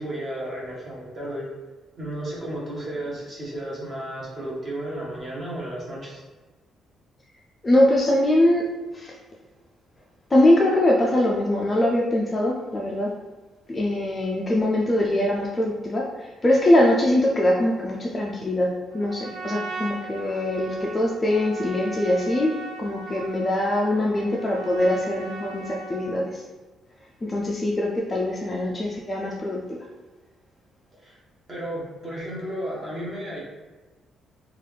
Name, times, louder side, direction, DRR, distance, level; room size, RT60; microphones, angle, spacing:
voice 1, 0.0-1.5 2.0-6.2 31.0-31.2 31.5-33.4, right 1 dB, 25° right, -4 dB, 1.0 m, -33 dB
voice 2, 7.6-8.6 8.9-9.2 10.3-13.1 13.7-26.4 27.2-29.9, left 1 dB, 15° left, -2 dB, 0.3 m, -22 dB
Trumpet, 18.9-26.2, right 4 dB, 80° right, 0.5 m, -38 dB
3.8 x 2.3 x 3.2 m, 1.2 s
cardioid pair, 170°, 0 cm